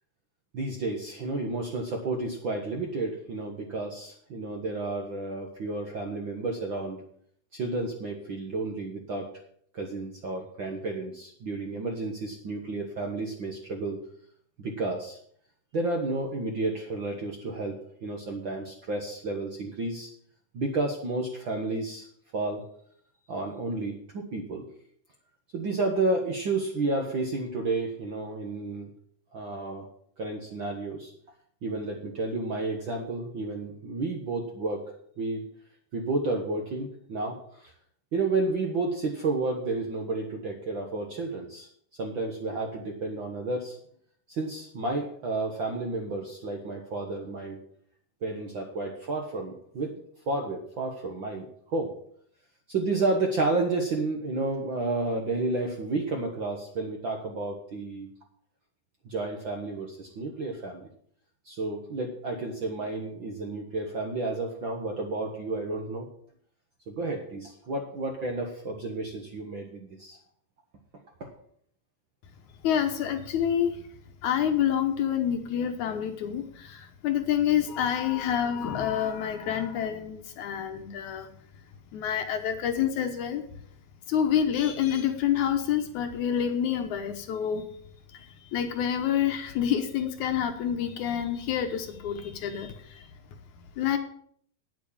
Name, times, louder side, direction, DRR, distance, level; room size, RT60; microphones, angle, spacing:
voice 1, 0.5-7.0 7.5-9.3 9.7-14.0 14.6-15.2 15.7-20.1 20.5-22.1 22.3-22.6 23.3-24.7 25.5-28.9 29.3-29.9 30.2-31.1 31.6-34.8 35.2-35.4 35.9-37.7 38.1-41.7 42.0-43.8 44.3-47.6 48.2-50.0 50.3-51.9 52.7-58.1 59.0-60.9 61.4-66.1 66.9-70.2 71.2-71.3, right 2 dB, 55° right, 2 dB, 1.4 m, -31 dB
voice 2, 72.6-73.8 74.2-81.3 81.9-83.4 84.1-87.6 88.1-93.1 93.8-94.0, left 9 dB, 70° left, 7 dB, 2.2 m, -28 dB
9.2 x 8.7 x 7.2 m, 0.62 s
omnidirectional pair, 3.8 m